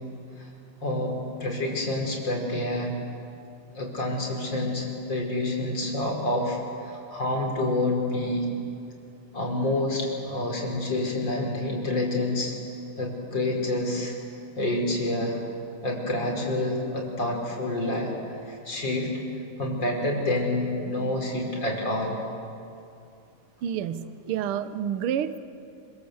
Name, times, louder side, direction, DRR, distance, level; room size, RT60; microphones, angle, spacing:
voice 1, 0.8-2.9 3.7-8.5 9.3-12.6 13.0-14.1 14.6-15.4 15.8-18.1 18.4-19.1 19.6-22.2, left 1 dB, 35° left, 0 dB, 5.1 m, -28 dB
voice 2, 23.6-25.4, right 9 dB, 65° right, 13 dB, 1.4 m, -29 dB
27.0 x 26.0 x 8.1 m, 2.6 s
omnidirectional pair, 3.5 m